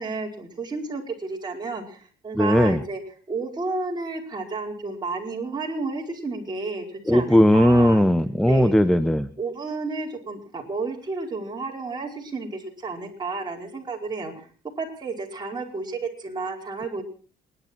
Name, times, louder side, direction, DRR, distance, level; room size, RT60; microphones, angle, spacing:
voice 1, 0.0-3.0 3.3-8.0 8.5-8.7 9.4-14.5 14.8-17.0, right 3 dB, 25° right, 0 dB, 4.8 m, -31 dB
voice 2, 2.3-2.8 7.1-9.3, equal, ahead, 13 dB, 0.7 m, -18 dB
28.0 x 11.5 x 4.5 m, 0.41 s
cardioid pair, 110°, 17 cm